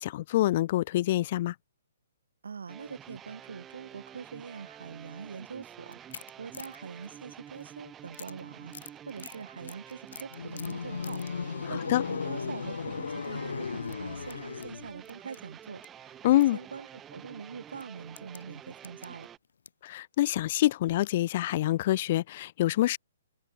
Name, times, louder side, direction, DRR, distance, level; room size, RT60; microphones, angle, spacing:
voice 1, 0.0-1.5 11.9-12.0 16.2-16.6 19.8-23.0, left 14 dB, 40° left, 0.5 m, -26 dB
voice 2, 2.4-19.3, right 5 dB, 90° right, 5.6 m, -44 dB
sound 1, 2.7-19.4, right 10 dB, 15° right, 2.4 m, -49 dB
sound 2, 5.9-7.7 8.1-11.4 11.8-12.1 13.0-13.1 13.8-15.9 16.1-16.5 16.9-17.0 17.8-20.5 20.9-21.0 21.4-21.5, left 7 dB, 75° left, 4.3 m, -49 dB
sound 3, 10.3-15.0, left 5 dB, 90° left, 2.4 m, -35 dB
hypercardioid pair, 160°, 0 cm